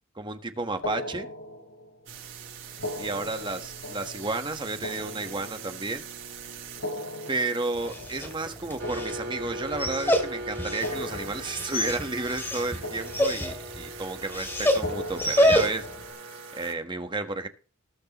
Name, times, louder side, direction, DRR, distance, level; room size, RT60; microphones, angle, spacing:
voice 1, 0.2-1.3 3.0-6.0 7.3-15.9 16.5-17.5, right 3 dB, 20° right, 8 dB, 1.3 m, -32 dB
sound 1, 0.8-2.1 2.7-6.0 6.7-10.0 10.7-12.6 12.8-13.9 14.7-16.5, left 1 dB, 65° left, 4.4 m, -39 dB
sound 2, 2.1-16.7, right 3 dB, 60° right, 6.3 m, -41 dB
Dog, 7.7-16.0, equal, 10° left, 2.7 m, -28 dB
20.0 x 6.6 x 3.1 m, 0.38 s
head